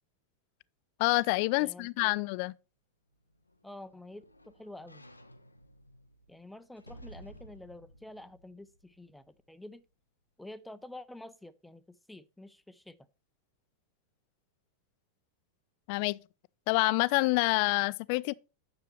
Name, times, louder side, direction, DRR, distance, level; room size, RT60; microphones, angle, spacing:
voice 1, 1.0-2.5 15.9-16.2 16.7-18.3, left 24 dB, 45° left, 0.3 m, -27 dB
voice 2, 1.6-2.2 3.6-5.1 6.3-9.8 10.4-13.0, left 1 dB, 5° left, 0.6 m, -48 dB
sound 1, 3.1-9.5 9.9-10.0, equal, 85° left, 0.6 m, -55 dB
9.6 x 6.8 x 3.1 m
figure-of-eight pair, 90°, 0 cm